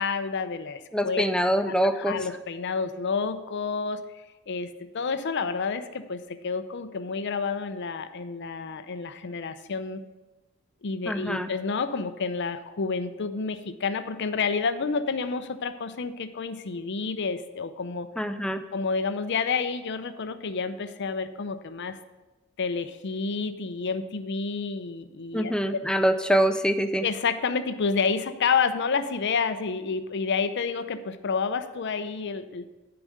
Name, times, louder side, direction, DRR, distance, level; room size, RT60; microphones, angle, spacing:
voice 1, 0.0-1.2 1.7-10.0 10.8-18.1 18.7-22.0 22.6-25.5 27.0-32.7, left 5 dB, 55° left, 11 dB, 0.5 m, -29 dB
voice 2, 0.9-2.2 11.1-11.5 18.2-18.6 25.3-27.0, equal, 5° left, 9 dB, 0.4 m, -24 dB
10.0 x 4.9 x 6.3 m, 1.1 s
head